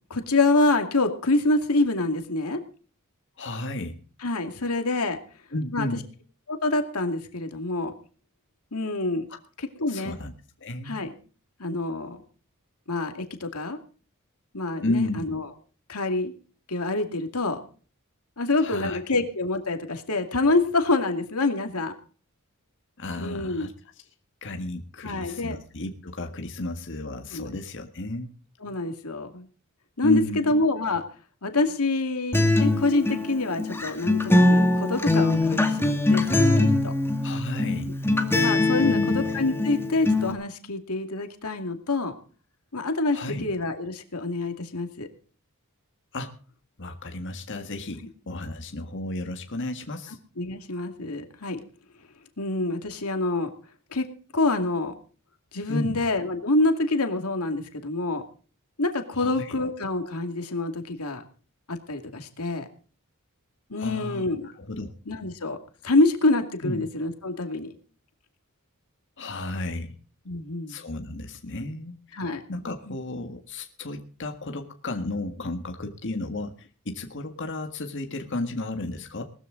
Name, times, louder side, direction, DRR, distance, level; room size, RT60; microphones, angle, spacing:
voice 1, 0.1-2.6 4.2-5.2 5.7-6.0 6.5-7.9 8.7-9.3 9.6-10.2 10.8-11.1 11.6-12.2 12.9-13.8 14.5-15.5 15.9-16.3 16.7-17.6 18.4-21.9 23.2-23.7 25.0-25.6 27.3-27.5 28.6-29.5 30.0-31.0 31.4-36.9 37.8-37.9 38.4-42.1 42.7-45.1 50.4-51.6 52.4-53.5 53.9-54.1 54.3-54.9 55.5-58.2 58.8-61.2 61.7-62.7 63.7-64.5 65.1-65.6 65.8-67.7 70.3-70.8 72.1-72.4 72.9-73.0, left 2 dB, 90° left, 6 dB, 2.3 m, -26 dB
voice 2, 3.4-4.0 5.5-6.0 9.9-10.3 10.6-11.0 14.8-15.3 18.6-19.0 23.0-23.7 24.4-28.3 30.0-30.5 37.2-37.9 38.8-39.2 43.1-43.4 46.1-46.3 46.8-50.2 55.7-56.0 59.1-59.6 63.8-64.9 66.6-66.8 69.2-69.9 70.7-72.2 72.5-79.2, left 2 dB, 55° left, 5 dB, 1.8 m, -33 dB
Acoustic guitar, 32.3-40.3, left 2 dB, 10° left, 2.2 m, -22 dB
19.5 x 14.0 x 3.9 m, 0.40 s
head